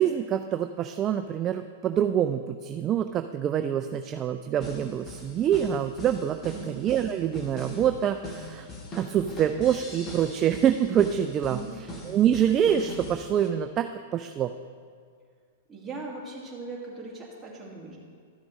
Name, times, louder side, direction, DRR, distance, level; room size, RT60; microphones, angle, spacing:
voice 1, 0.0-8.7 9.0-11.6 12.0-13.9 14.1-14.5, right 9 dB, 30° right, 7 dB, 0.3 m, -25 dB
sound 1, 4.6-13.5, left 1 dB, 25° left, 1.3 m, -41 dB
voice 2, 11.4-11.8 15.7-18.0, right 3 dB, 10° right, -5 dB, 2.0 m, -39 dB
13.0 x 7.2 x 3.1 m, 2.1 s
hypercardioid pair, 125°, 0 cm